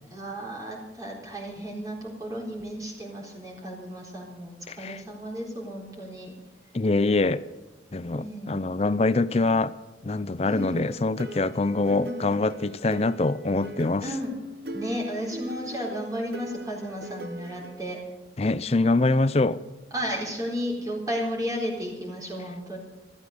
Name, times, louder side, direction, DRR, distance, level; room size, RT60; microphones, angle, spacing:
voice 1, 0.1-6.3 8.1-8.5 10.4-10.8 11.9-12.2 14.0-14.3 14.7-18.0 19.9-22.8, equal, 20° right, 4.0 m, -33 dB
voice 2, 4.7-5.0 6.7-7.4 7.9-9.7 10.0-14.1 18.4-19.6, left 2 dB, 35° left, 0.5 m, -24 dB
sound 1, 10.5-17.8, right 1 dB, 60° right, 1.3 m, -40 dB
14.5 x 14.0 x 6.7 m
head